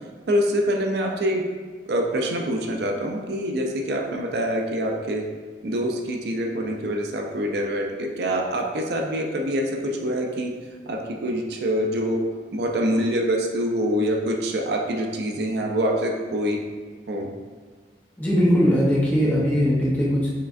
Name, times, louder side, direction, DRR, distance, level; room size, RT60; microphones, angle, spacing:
voice 1, 0.3-1.4 1.9-5.3 5.6-10.5 10.9-12.2 12.5-16.6 17.1-17.3, equal, 65° right, 2 dB, 0.4 m, -25 dB
voice 2, 18.2-20.3, equal, 10° left, -6 dB, 0.7 m, -20 dB
4.8 x 3.2 x 2.5 m, 1.6 s
head